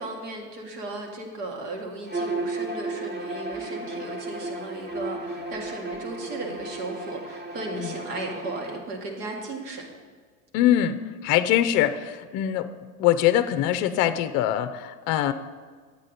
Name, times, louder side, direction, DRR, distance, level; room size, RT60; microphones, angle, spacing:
voice 1, 0.0-9.9, right 2 dB, 70° right, 1 dB, 2.0 m, -36 dB
Bowed string instrument, 2.1-8.8, right 2 dB, 20° right, 1.3 m, -34 dB
voice 2, 10.5-11.0 11.2-12.7 13.0-15.3, left 12 dB, 40° left, 11 dB, 0.6 m, -23 dB
9.7 x 8.1 x 4.0 m, 1.5 s
hypercardioid pair, 90°, 47 cm